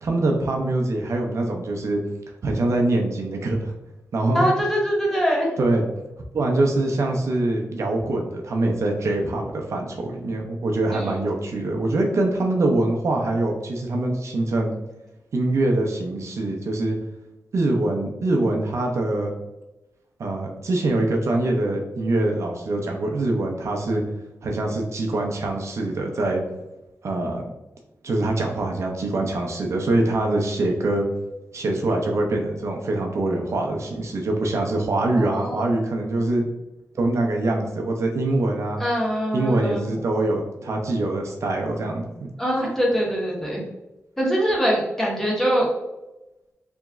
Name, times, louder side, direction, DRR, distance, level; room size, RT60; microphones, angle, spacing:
voice 1, 0.0-2.0 2.4-3.7 4.1-4.6 5.6-5.8 6.3-14.8 15.3-17.0 17.5-19.3 20.2-24.0 24.4-26.4 27.0-27.4 28.0-31.1 31.5-36.4 37.0-38.8 39.3-42.0, right 2 dB, 65° right, 1 dB, 0.6 m, -24 dB
voice 2, 4.3-5.6 10.9-11.2 35.1-35.7 38.8-39.9 42.4-43.6 44.2-45.7, equal, 5° left, -3 dB, 1.0 m, -23 dB
3.5 x 3.0 x 3.5 m, 0.98 s
wide cardioid pair, 155°, 5 cm